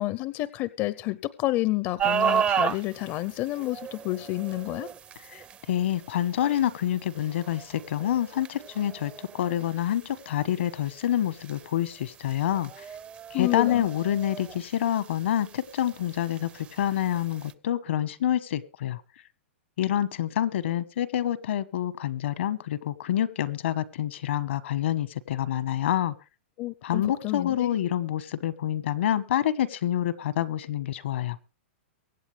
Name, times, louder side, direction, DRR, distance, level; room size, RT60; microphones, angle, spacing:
voice 1, 0.0-4.9 13.3-13.9 26.6-27.7, left 17 dB, 30° left, 18 dB, 0.6 m, -29 dB
sound 1, 2.0-17.5, right 8 dB, 20° right, 0.5 m, -35 dB
voice 2, 5.3-12.8 13.3-19.0 19.8-26.1 26.8-31.4, left 11 dB, 70° left, 17 dB, 1.3 m, -27 dB
23.5 x 8.6 x 3.3 m, 0.30 s
hypercardioid pair, 150°, 7 cm